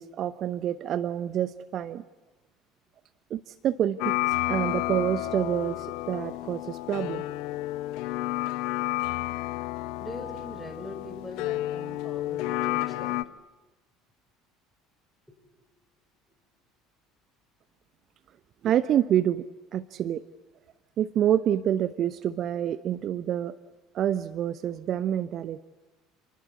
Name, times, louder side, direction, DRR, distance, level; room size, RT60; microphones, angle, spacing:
voice 1, 0.0-2.0 3.3-7.3 18.6-19.4 19.7-20.2 21.0-23.5 23.9-25.6, right 10 dB, 45° right, 14 dB, 0.8 m, -27 dB
sound 1, 4.0-13.2, left 17 dB, 60° left, 0.9 m, -31 dB
voice 2, 10.0-13.2 15.3-15.4, left 1 dB, ahead, 6 dB, 5.7 m, -42 dB
28.0 x 20.0 x 8.2 m, 1.1 s
figure-of-eight pair, 65°, 0 cm